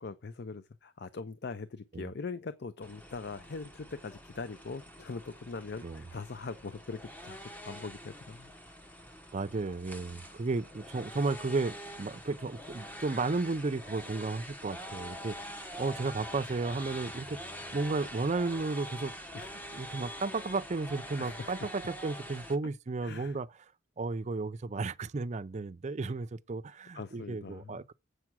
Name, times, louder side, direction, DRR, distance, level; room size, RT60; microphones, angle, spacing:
voice 1, 0.0-7.4 7.6-8.5 19.3-19.5 21.2-21.7 23.0-23.3 26.9-27.8, left 4 dB, 55° left, 0.5 m, -41 dB
sound 1, 2.8-22.6, equal, 10° left, 0.8 m, -45 dB
voice 2, 9.3-17.4 17.7-19.1 19.5-23.6 24.0-27.9, right 3 dB, 35° right, 0.5 m, -34 dB
8.0 x 5.9 x 6.1 m
head